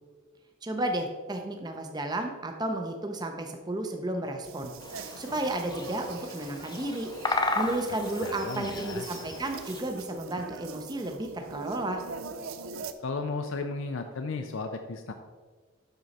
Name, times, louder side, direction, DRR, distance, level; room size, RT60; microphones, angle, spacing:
voice 1, 0.6-4.7 5.2-7.1 7.6-12.0, right 1 dB, 20° right, 4 dB, 0.6 m, -32 dB
sound 1, 4.4-12.9, right 5 dB, 80° right, 0.5 m, -43 dB
Bird vocalization bird call bird song, 4.8-9.8, left 2 dB, 20° left, 0.5 m, -35 dB
voice 2, 8.0-9.1 13.0-15.1, left 4 dB, 70° left, 6 dB, 0.5 m, -34 dB
7.9 x 6.1 x 4.1 m, 1.5 s
head